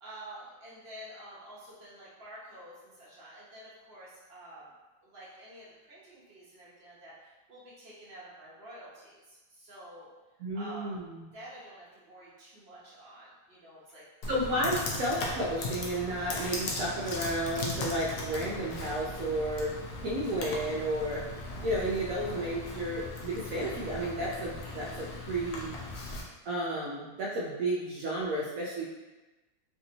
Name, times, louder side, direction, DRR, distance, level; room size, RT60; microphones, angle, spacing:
voice 1, 0.0-4.7 5.0-10.1 10.5-11.0 11.3-14.0, right 1 dB, 45° right, -8 dB, 0.9 m, -49 dB
voice 2, 10.4-11.2 14.3-19.7 20.0-21.2 21.6-25.8 26.5-28.8, right 1 dB, 75° right, -5 dB, 0.7 m, -32 dB
Computer keyboard, 14.2-26.2, left 2 dB, 80° left, 0.7 m, -38 dB
3.3 x 2.6 x 2.7 m, 1.1 s
omnidirectional pair, 2.0 m